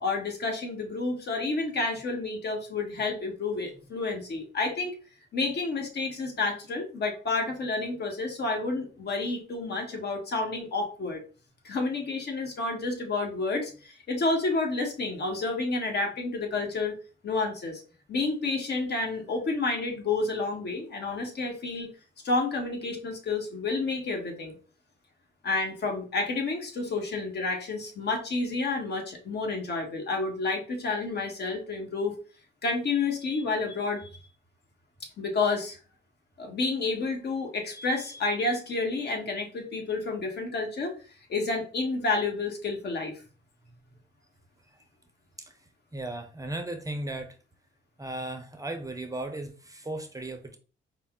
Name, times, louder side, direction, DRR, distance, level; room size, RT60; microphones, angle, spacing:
voice 1, 0.0-4.9 5.3-11.2 11.6-16.9 17.2-17.8 18.1-21.9 22.2-24.6 25.4-32.2 32.6-34.1 35.2-35.8 36.4-40.9 41.3-43.1, left 3 dB, 55° left, 1.3 m, -30 dB
voice 2, 45.9-47.4 48.0-50.6, right 2 dB, 15° right, 0.6 m, -36 dB
5.0 x 2.0 x 3.6 m
cardioid pair, 90°, 20 cm